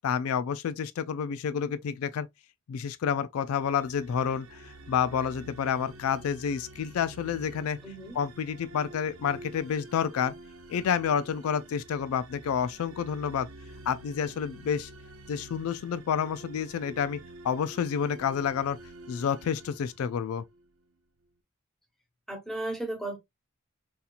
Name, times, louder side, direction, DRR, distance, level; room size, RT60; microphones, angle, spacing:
voice 1, 0.0-2.3 2.7-7.8 8.2-10.3 10.7-13.5 13.9-14.9 15.3-17.2 17.4-18.8 19.1-20.4, left 7 dB, 75° left, 0.3 m, -29 dB
sound 1, 3.5-20.6, right 2 dB, 70° right, 0.7 m, -48 dB
voice 2, 7.8-8.2 22.3-23.2, right 2 dB, ahead, 1.2 m, -35 dB
4.0 x 2.8 x 2.4 m
head